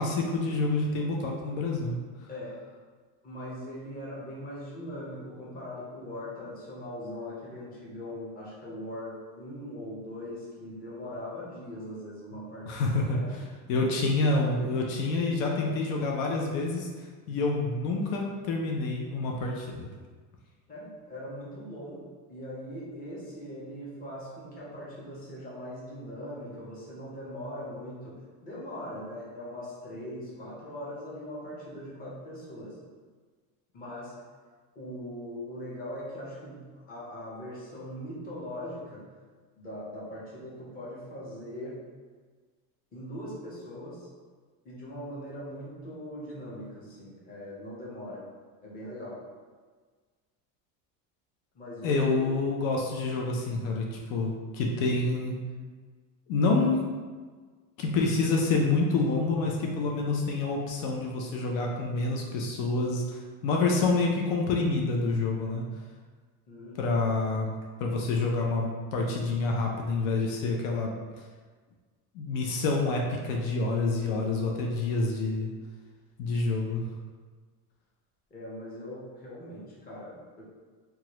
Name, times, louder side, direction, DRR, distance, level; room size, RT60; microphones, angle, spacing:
voice 1, 0.0-2.0 12.7-13.2 13.7-16.9 17.3-19.9 51.8-55.3 56.3-56.8 57.8-65.6 66.8-67.5 67.8-70.9 72.1-75.5 76.2-76.9, left 3 dB, 90° left, 0 dB, 0.6 m, -27 dB
voice 2, 2.3-2.6 3.2-13.3 13.8-14.3 20.7-32.8 33.7-34.1 34.7-39.0 39.6-41.8 42.9-44.1 44.6-48.3 48.6-49.2 51.5-52.3 66.5-67.0 78.3-80.4, equal, 25° left, -6 dB, 0.7 m, -40 dB
2.9 x 2.4 x 2.9 m, 1.5 s
cardioid pair, 150°, 38 cm